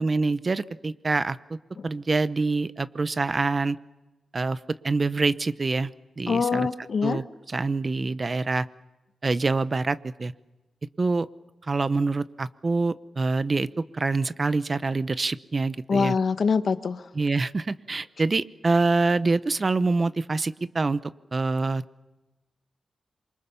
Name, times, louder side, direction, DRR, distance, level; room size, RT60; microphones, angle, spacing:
voice 1, 0.0-1.6 1.8-3.8 4.3-4.6 4.8-5.9 6.2-6.7 7.0-8.7 9.2-10.3 11.0-11.3 11.6-16.1 17.1-21.0 21.3-22.0, right 3 dB, 30° right, 15 dB, 0.8 m, -25 dB
voice 2, 6.3-7.2 15.9-17.0, left 5 dB, 60° left, 11 dB, 1.2 m, -24 dB
27.0 x 24.0 x 6.9 m, 1.1 s
wide cardioid pair, 135°, 0 cm